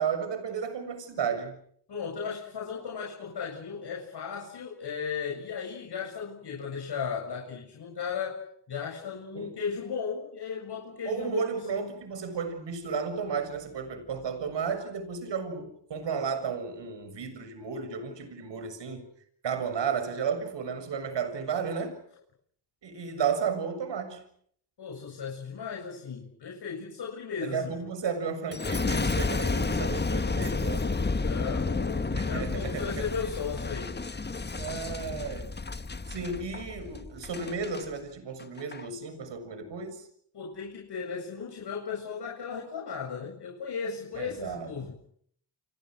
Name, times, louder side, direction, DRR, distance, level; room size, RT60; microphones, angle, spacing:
voice 1, 0.0-1.6 9.3-9.5 11.0-19.1 19.4-22.0 22.8-24.2 27.4-31.0 32.1-33.1 34.5-35.5 36.1-40.0 44.2-44.7, right 6 dB, 75° right, 7.2 m, -33 dB
voice 2, 1.9-11.9 24.8-27.9 31.2-34.0 40.3-44.9, left 6 dB, 65° left, 7.5 m, -36 dB
Boom, 28.5-37.8 38.4-38.8, left 3 dB, 25° left, 1.5 m, -31 dB
29.5 x 29.5 x 6.5 m
cardioid pair, 75°, 43 cm